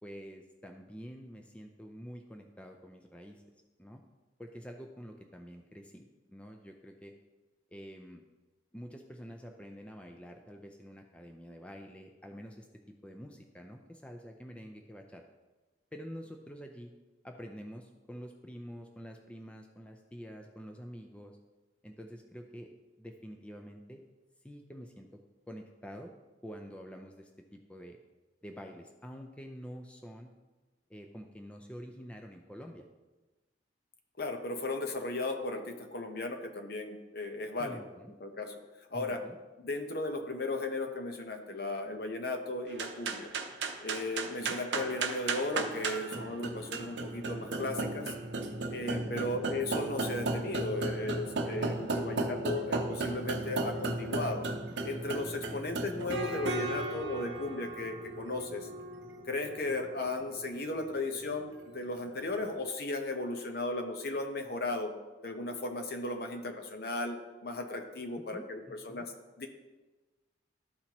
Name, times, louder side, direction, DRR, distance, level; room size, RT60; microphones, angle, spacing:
voice 1, 0.0-3.4 3.8-4.0 4.4-7.1 7.7-8.2 8.7-15.2 15.9-16.9 17.2-21.4 21.8-22.7 23.0-24.0 24.4-25.2 25.5-26.2 26.4-28.0 28.4-30.3 30.9-32.9 37.6-38.1 38.9-39.4 44.4-44.6 49.1-49.4 52.0-52.3 55.5-55.6 68.3-69.0, equal, 5° left, 3 dB, 0.4 m, -47 dB
voice 2, 34.2-37.9 38.2-38.6 38.9-39.2 39.6-43.3 43.8-48.1 48.7-54.5 54.8-58.7 59.3-64.9 65.2-69.5, left 2 dB, 55° left, 5 dB, 0.8 m, -36 dB
sound 1, 42.7-62.2, right 2 dB, 70° right, 0.7 m, -36 dB
13.0 x 4.3 x 2.9 m, 1.2 s
head